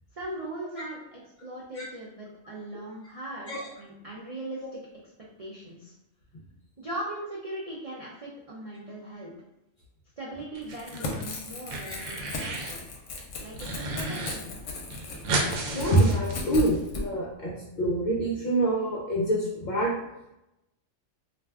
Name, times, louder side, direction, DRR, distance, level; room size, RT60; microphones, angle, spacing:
voice 1, 0.1-4.8 5.4-5.9 6.8-9.3 10.2-12.8 13.4-14.6, right 1 dB, 65° right, -5 dB, 0.3 m, -39 dB
sound 1, 10.6-11.2 11.5-12.8 13.2-14.3 14.6-14.7 14.9-16.8, right 2 dB, 85° right, 0.9 m, -33 dB
Crackle / Tearing, 10.7-17.0, left 3 dB, 80° left, 0.9 m, -37 dB
voice 2, 15.7-19.9, right 1 dB, 60° left, -4 dB, 0.5 m, -26 dB
2.5 x 2.3 x 3.2 m, 0.88 s
omnidirectional pair, 1.3 m